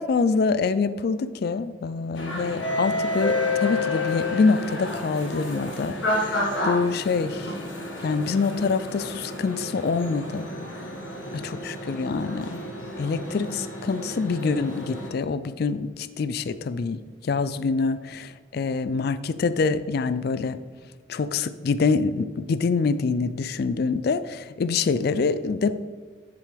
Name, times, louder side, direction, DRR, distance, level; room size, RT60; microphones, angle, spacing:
voice 1, 0.0-7.5 8.0-10.5 11.3-12.6 13.0-20.6 21.1-25.8, left 4 dB, 55° left, 14 dB, 0.3 m, -25 dB
sound 1, 2.2-15.1, left 2 dB, 85° left, 1.8 m, -30 dB
10.5 x 7.6 x 3.4 m, 1.5 s
head